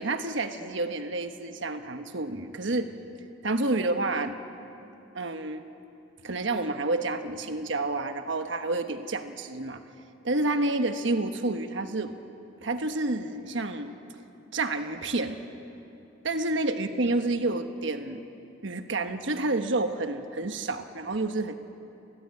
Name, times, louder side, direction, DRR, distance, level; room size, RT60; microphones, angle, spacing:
voice 1, 0.0-2.9 3.4-4.4 5.1-5.6 6.2-9.8 10.2-12.1 12.6-13.9 14.5-15.4 16.2-18.2 18.6-21.5, right 2 dB, 65° right, 7 dB, 1.3 m, -29 dB
30.0 x 14.5 x 9.6 m, 2.8 s
head